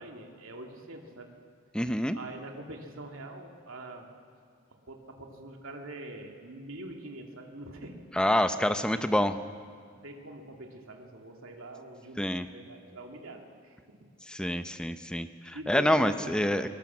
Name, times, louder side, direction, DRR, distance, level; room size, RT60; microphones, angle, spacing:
voice 1, 0.0-1.3 2.1-4.1 4.9-8.5 8.9-9.1 10.0-14.1 15.5-16.7, right 2 dB, 80° right, 3 dB, 2.5 m, -44 dB
voice 2, 1.7-2.2 8.2-9.3 12.2-12.5 14.3-16.8, left 1 dB, 5° left, 10 dB, 0.7 m, -27 dB
22.5 x 18.5 x 7.4 m, 2.3 s
head